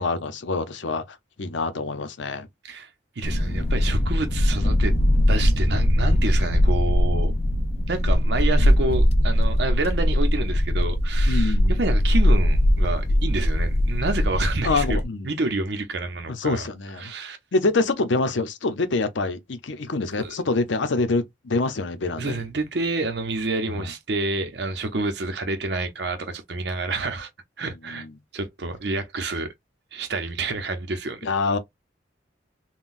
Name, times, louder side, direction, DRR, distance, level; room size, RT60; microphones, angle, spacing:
voice 1, 0.0-2.5 11.3-11.8 14.6-15.3 16.3-17.1 17.5-22.4 23.7-23.9 27.9-28.1 31.2-31.6, left 3 dB, 75° left, 0.7 m, -26 dB
sound 1, 3.2-15.0, left 1 dB, 35° left, 0.4 m, -20 dB
voice 2, 3.2-4.9 5.3-7.3 7.9-15.0 15.2-16.7 17.0-17.4 20.2-20.4 22.2-27.3 27.6-28.1 28.3-29.5 29.9-31.3, right 3 dB, 60° right, 0.7 m, -28 dB
3.8 x 2.2 x 2.5 m
head